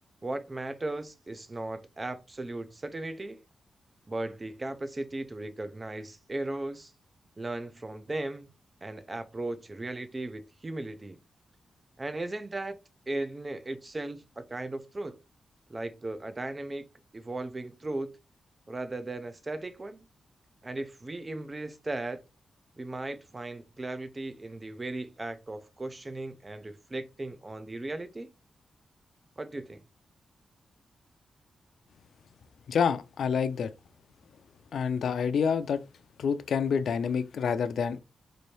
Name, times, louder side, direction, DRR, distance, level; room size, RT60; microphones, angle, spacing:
voice 1, 0.2-3.4 4.1-6.9 7.4-8.5 8.8-11.2 12.0-12.8 13.1-15.2 15.7-16.8 17.1-18.1 18.7-20.1 20.6-22.2 22.8-28.3 29.4-29.8, right 2 dB, 25° right, 0.5 m, -37 dB
voice 2, 32.7-33.7 34.7-35.8 36.2-38.0, left 6 dB, 80° left, 0.4 m, -27 dB
4.3 x 2.6 x 3.1 m
wide cardioid pair, 130°, 0 cm